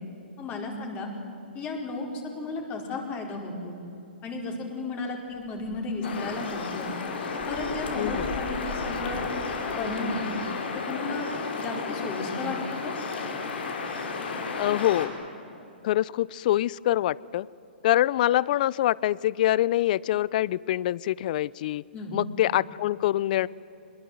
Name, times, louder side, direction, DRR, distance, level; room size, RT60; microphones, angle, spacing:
voice 1, 0.4-1.1 1.5-2.1 2.3-3.8 4.2-6.9 7.5-9.3 9.7-10.3 10.7-11.3 11.6-12.6 12.8-12.9 21.9-22.2, left 3 dB, 25° left, 2 dB, 4.6 m, -34 dB
sound 1, 5.3-10.4, right 1 dB, 5° right, 3.8 m, -43 dB
sound 2, 6.0-15.1, left 4 dB, 65° left, 5.0 m, -32 dB
voice 2, 8.0-8.3 14.6-15.1 15.8-17.5 17.8-21.8 22.1-23.5, left 14 dB, 45° left, 23 dB, 0.5 m, -25 dB
24.0 x 21.0 x 9.4 m, 2.8 s
hypercardioid pair, 145°, 6 cm